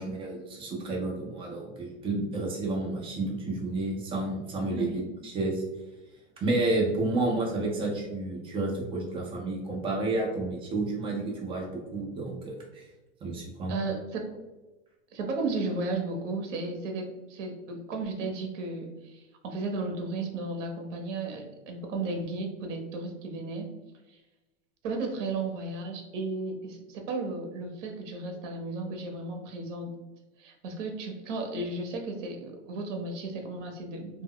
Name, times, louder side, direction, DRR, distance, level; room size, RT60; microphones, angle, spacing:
voice 1, 0.0-5.6 6.4-12.8 13.2-13.7, right 2 dB, 15° right, -2 dB, 0.4 m, -30 dB
voice 2, 4.8-5.1 13.7-14.3 15.1-23.7 24.8-29.9 30.4-34.2, right 3 dB, 75° right, 3 dB, 0.7 m, -34 dB
2.2 x 2.1 x 3.5 m, 1.1 s
supercardioid pair, 145°, 37 cm